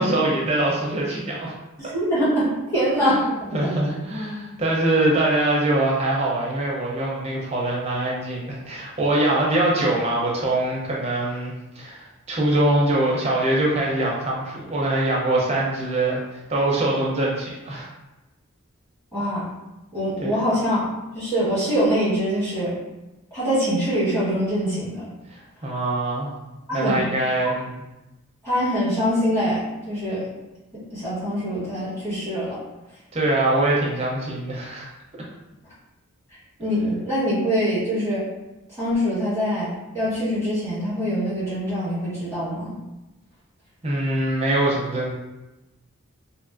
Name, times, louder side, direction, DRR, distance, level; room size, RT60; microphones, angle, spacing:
voice 1, 0.0-1.5 3.0-17.9 20.2-20.4 25.3-26.3 26.7-27.8 33.1-34.9 43.8-45.1, right 1 dB, 30° right, -4 dB, 0.5 m, -23 dB
voice 2, 1.8-3.7 19.1-19.4 19.9-20.9 21.1-22.8 23.3-25.1 26.7-27.0 27.4-27.5 28.4-30.3 30.9-32.6 36.6-38.3 38.8-42.8, equal, 10° left, -12 dB, 1.3 m, -24 dB
2.6 x 2.4 x 2.5 m, 1.0 s
head